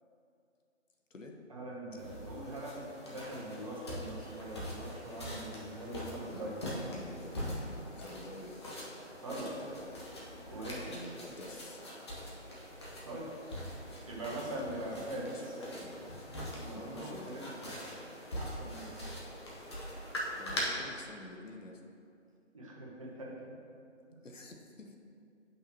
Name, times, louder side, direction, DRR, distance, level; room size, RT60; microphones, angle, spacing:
voice 1, 1.5-6.6 9.2-9.5 10.5-10.8 13.0-13.3 14.1-15.3 16.5-17.8 18.4-18.9 22.5-23.6, right 1 dB, 25° right, -4 dB, 0.9 m, -42 dB
sound 1, 2.0-20.6, equal, 20° left, 0.7 m, -43 dB
voice 2, 6.3-7.6 7.9-8.6 9.3-10.0 10.8-11.8 14.6-16.1 16.7-17.7 20.4-21.8 24.2-25.0, left 1 dB, 85° left, 3 dB, 1.0 m, -48 dB
8.4 x 5.6 x 2.9 m, 2.5 s
figure-of-eight pair, 155°, 37 cm